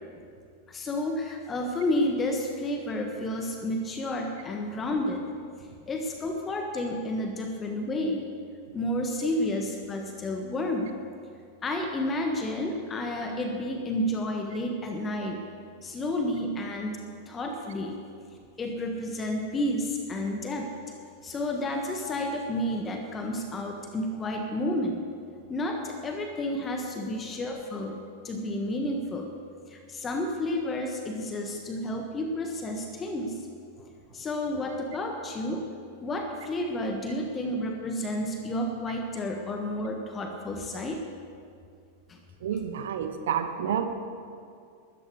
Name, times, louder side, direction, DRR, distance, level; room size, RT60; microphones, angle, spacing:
voice 1, 0.7-5.2 5.9-8.3 8.7-10.9 11.6-15.4 15.8-17.0 17.3-18.0 18.6-25.0 25.5-28.0 28.2-29.3 29.7-33.5 33.8-35.7 36.0-41.0 42.1-42.2, left 1 dB, 20° left, 3 dB, 1.5 m, -31 dB
voice 2, 42.4-43.9, right 8 dB, 60° right, 7 dB, 1.3 m, -29 dB
20.0 x 13.5 x 4.8 m, 2.3 s
figure-of-eight pair, 90°, 0 cm